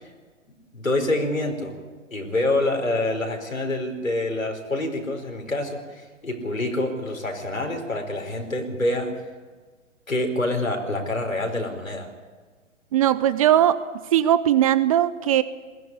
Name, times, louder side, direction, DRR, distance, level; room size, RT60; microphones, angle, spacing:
voice 1, 0.7-1.7 2.1-9.1 10.1-12.1, left 2 dB, 80° left, 3 dB, 4.9 m, -26 dB
voice 2, 12.9-13.8 14.1-15.4, right 11 dB, 25° right, 16 dB, 0.7 m, -19 dB
21.0 x 18.0 x 9.9 m, 1.4 s
figure-of-eight pair, 120°, 39 cm